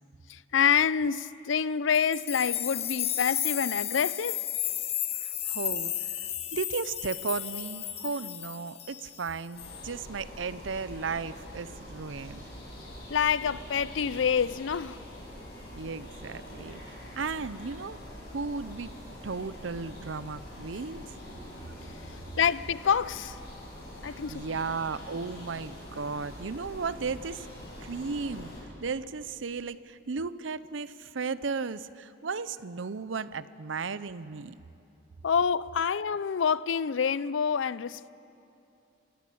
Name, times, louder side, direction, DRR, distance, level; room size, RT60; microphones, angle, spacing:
voice 1, 0.3-4.4 13.1-15.0 22.1-23.4 24.0-24.4 35.2-38.1, left 7 dB, 75° left, 0.5 m, -27 dB
sound 1, 1.9-9.3 9.6-9.9, left 11 dB, 30° left, 0.7 m, -33 dB
voice 2, 5.2-5.9 6.5-12.5 15.7-16.8 17.2-18.0 18.3-18.9 19.2-21.1 24.0-27.5 27.8-28.5 28.8-34.6, right 4 dB, 80° right, 0.6 m, -35 dB
sound 2, 9.5-28.6, equal, 55° left, 7.2 m, -44 dB
26.5 x 16.5 x 8.5 m
head